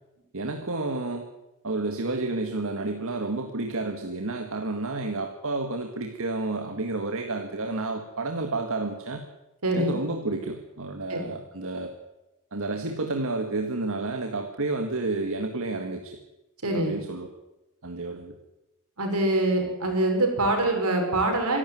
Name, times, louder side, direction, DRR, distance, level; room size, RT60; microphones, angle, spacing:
voice 1, 0.3-1.2 1.6-9.2 9.7-11.9 12.5-16.1 16.7-17.3 17.8-18.3, right 2 dB, 65° right, 4 dB, 1.9 m, -30 dB
voice 2, 9.6-9.9 11.1-11.3 16.6-17.0 19.0-21.6, right 1 dB, 85° right, 3 dB, 5.8 m, -24 dB
25.5 x 12.0 x 9.4 m, 0.95 s
head